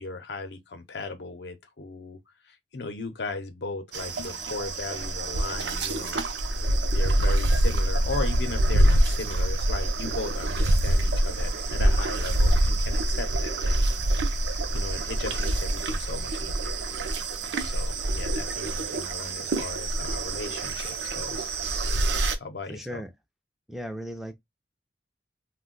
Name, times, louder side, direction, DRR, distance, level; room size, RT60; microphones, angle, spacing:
voice 1, 0.0-2.2 2.4-6.2 6.5-6.6 6.9-13.9 14.7-16.8 17.6-21.6 22.3-23.0, left 3 dB, 75° left, 0.6 m, -37 dB
sound 1, 3.9-22.4, right 1 dB, 90° right, 0.6 m, -25 dB
voice 2, 22.7-23.1 23.7-24.4, equal, ahead, 0.3 m, -36 dB
2.4 x 2.2 x 3.7 m
head